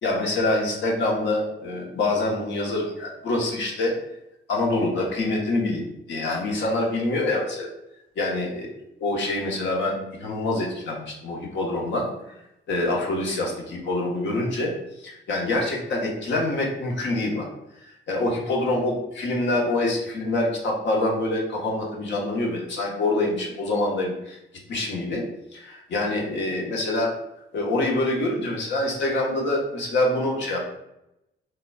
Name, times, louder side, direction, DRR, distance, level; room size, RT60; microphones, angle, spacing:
voice 1, 0.0-3.9 4.5-7.7 8.2-8.7 9.0-12.1 12.7-14.7 15.0-17.5 18.1-24.4 24.7-25.2 25.5-27.1 27.5-30.6, left 2 dB, 65° left, -1 dB, 1.0 m, -25 dB
5.0 x 2.3 x 2.2 m, 0.86 s
cardioid pair, 90°, 20 cm